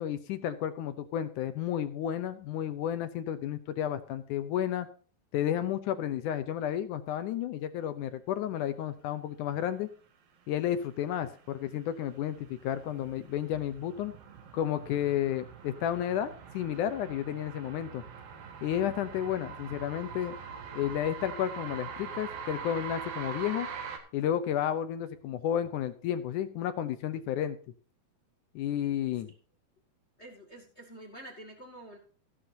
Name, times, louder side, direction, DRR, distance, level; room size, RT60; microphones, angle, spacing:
voice 1, 0.0-4.9 5.3-9.9 10.5-14.1 14.5-18.0 18.6-20.3 20.7-23.7 24.1-27.6 28.6-29.3, left 10 dB, 75° left, 11 dB, 2.0 m, -32 dB
sound 1, 11.2-24.0, right 6 dB, 70° right, 3.4 m, -43 dB
voice 2, 30.2-32.0, right 1 dB, 25° left, 3 dB, 1.6 m, -48 dB
14.5 x 11.5 x 2.8 m, 0.41 s
omnidirectional pair, 4.3 m